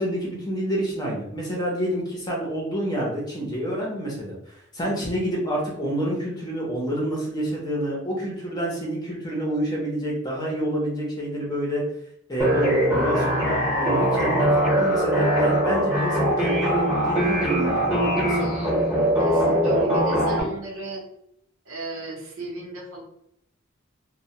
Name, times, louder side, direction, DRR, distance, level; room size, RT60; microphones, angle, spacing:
voice 1, 0.0-11.8 12.3-18.4, equal, 20° left, -4 dB, 0.7 m, -28 dB
sound 1, 12.4-20.4, right 1 dB, 5° right, 0.9 m, -21 dB
voice 2, 19.2-21.0 21.7-23.0, right 1 dB, 75° right, -2 dB, 0.8 m, -34 dB
2.1 x 2.1 x 2.8 m, 0.75 s
head